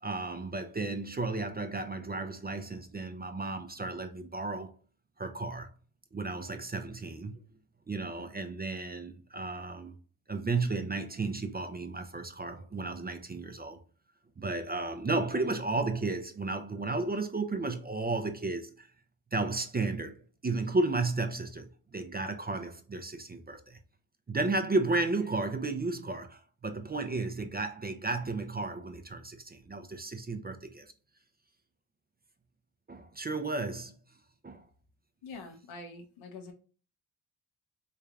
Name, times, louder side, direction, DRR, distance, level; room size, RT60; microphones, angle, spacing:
voice 1, 0.0-4.7 5.2-5.7 6.1-7.4 7.9-10.0 10.3-13.8 14.4-18.9 19.3-20.2 20.4-23.8 24.3-30.9 32.9-34.0 34.4-34.6, right 3 dB, 20° right, 0.5 m, -33 dB
voice 2, 35.2-36.5, left 3 dB, 75° left, 0.9 m, -45 dB
3.3 x 3.3 x 2.4 m
supercardioid pair, 45°, 47 cm